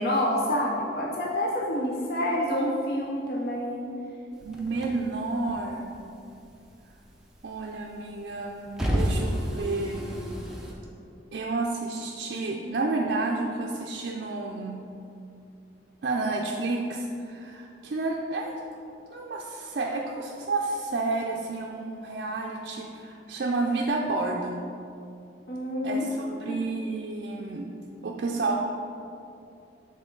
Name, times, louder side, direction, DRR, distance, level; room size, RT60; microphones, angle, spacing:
voice 1, 0.0-3.9 25.5-26.6, left 1 dB, 55° left, -3 dB, 0.6 m, -28 dB
sound 1, 4.3-6.1 6.4-7.7 8.1-10.7, equal, 5° right, 0.6 m, -30 dB
voice 2, 4.4-6.0 7.4-10.3 11.3-14.8 16.0-18.5 19.1-24.7 25.8-27.7 28.0-28.6, right 3 dB, 60° right, -1 dB, 0.4 m, -30 dB
7.4 x 3.5 x 3.8 m, 2.6 s
head